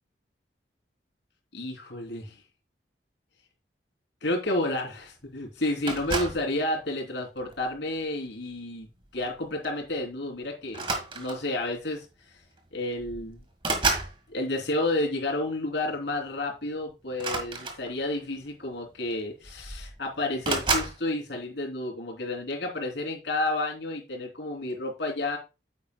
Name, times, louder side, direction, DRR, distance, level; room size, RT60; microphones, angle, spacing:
voice 1, 1.5-2.4 4.2-10.9 11.1-12.4 12.7-13.4 14.3-25.4, left 2 dB, 80° left, 1 dB, 3.1 m, -31 dB
sound 1, 5.9-6.5 7.4-7.7 9.2-9.3 9.6-9.8 10.7-11.6 12.6-12.7 13.0-14.2 17.1-18.2 19.1-19.2 19.4-20.0 20.4-21.0, right 3 dB, 30° right, 1.4 m, -30 dB
9.5 x 8.5 x 2.2 m, 0.28 s
head